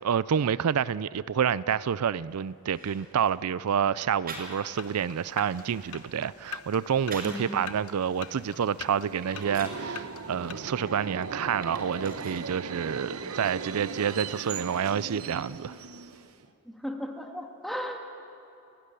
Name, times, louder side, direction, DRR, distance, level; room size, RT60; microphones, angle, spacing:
voice 1, 0.0-15.7, right 7 dB, 85° right, 0.4 m, -28 dB
sound 1, 2.2-2.3 2.7-3.4 4.3-4.9 5.3-7.5 8.0-9.9 10.4-12.6 12.9-13.7, right 3 dB, 45° right, 5.2 m, -46 dB
sound 2, 4.7-10.5, left 7 dB, 90° left, 0.9 m, -45 dB
voice 2, 7.2-7.6 16.6-18.0, equal, ahead, 2.1 m, -35 dB
Subway metro underground, 8.7-16.5, right 5 dB, 70° right, 1.0 m, -38 dB
30.0 x 12.0 x 10.0 m
head